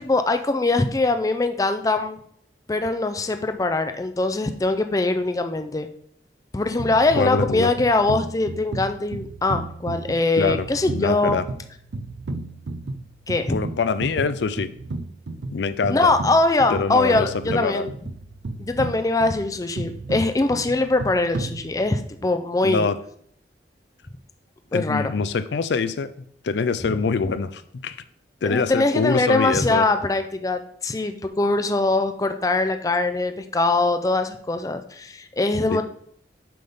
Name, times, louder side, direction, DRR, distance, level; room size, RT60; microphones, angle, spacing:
voice 1, 0.0-2.2 2.7-5.9 6.5-11.4 13.3-13.6 15.9-17.9 18.6-22.9 24.7-25.1 27.2-27.3 28.4-35.8, left 2 dB, 20° left, 8 dB, 0.4 m, -22 dB
sound 1, 6.8-22.2, right 2 dB, 90° right, 0.5 m, -34 dB
voice 2, 7.2-7.7 10.4-10.7 10.9-11.4 13.5-14.7 15.5-16.1 16.7-17.9 22.6-23.0 24.7-26.1 26.4-28.0 28.4-29.8 35.7-35.8, left 4 dB, 75° left, 13 dB, 0.4 m, -24 dB
7.6 x 3.6 x 5.4 m, 0.64 s
head